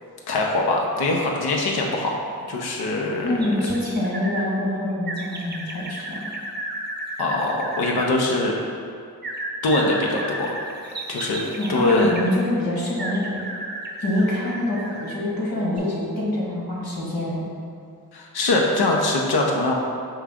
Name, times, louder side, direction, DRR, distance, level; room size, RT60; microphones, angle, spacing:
voice 1, 0.3-2.2 2.5-3.5 7.2-8.6 9.6-10.5 11.1-11.4 11.7-12.1 18.1-19.7, left 2 dB, 80° left, -1 dB, 0.6 m, -22 dB
voice 2, 3.2-6.3 11.6-13.4 14.0-17.4, left 1 dB, 60° left, -5 dB, 1.4 m, -25 dB
sound 1, 3.4-4.5 5.1-8.1 9.2-12.3 13.0-15.2 15.7-15.8, right 1 dB, 30° right, 0.5 m, -33 dB
4.5 x 2.4 x 3.5 m, 2.4 s
cardioid pair, 45°, 38 cm